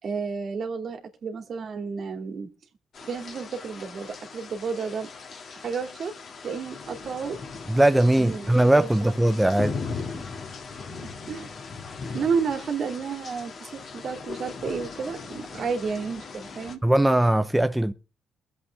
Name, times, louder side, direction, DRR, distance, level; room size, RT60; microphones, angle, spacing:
voice 1, 0.0-2.5 3.0-5.1 5.6-6.1 6.4-7.4 8.2-9.1 11.3-11.5 12.1-16.8, right 5 dB, 55° right, 2.6 m, -31 dB
sound 1, 2.9-16.8, left 4 dB, 50° left, 2.1 m, -39 dB
voice 2, 7.7-9.8 16.8-17.9, right 1 dB, 5° right, 0.6 m, -20 dB
22.5 x 8.1 x 3.4 m
cardioid pair, 90°, 0 cm